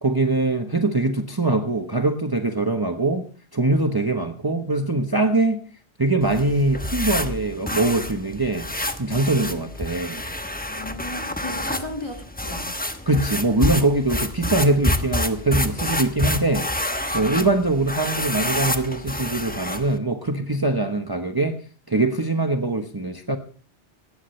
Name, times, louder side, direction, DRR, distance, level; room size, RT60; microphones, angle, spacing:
voice 1, 0.0-3.2 3.5-5.6 6.0-10.2 13.1-21.6 21.9-23.4, right 2 dB, 20° right, 5 dB, 1.1 m, -22 dB
sound 1, 6.2-20.0, left 1 dB, 10° left, 1.0 m, -28 dB
voice 2, 10.7-12.7, left 2 dB, 25° left, 4 dB, 2.3 m, -36 dB
18.5 x 15.0 x 3.3 m, 0.40 s
omnidirectional pair, 1.1 m